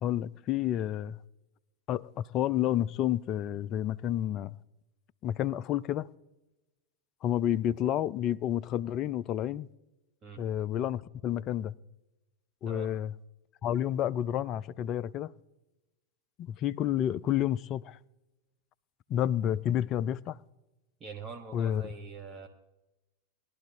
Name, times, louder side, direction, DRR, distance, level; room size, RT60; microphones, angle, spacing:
voice 1, 0.0-1.2 1.9-4.6 5.2-6.1 7.2-9.7 10.4-11.7 12.6-13.1 13.6-15.3 16.4-18.0 19.1-20.4 21.5-21.8, left 11 dB, 35° left, 0.3 m, -30 dB
voice 2, 21.0-22.5, right 5 dB, 25° right, 1.1 m, -43 dB
21.0 x 11.5 x 2.7 m
figure-of-eight pair, 90°, 0 cm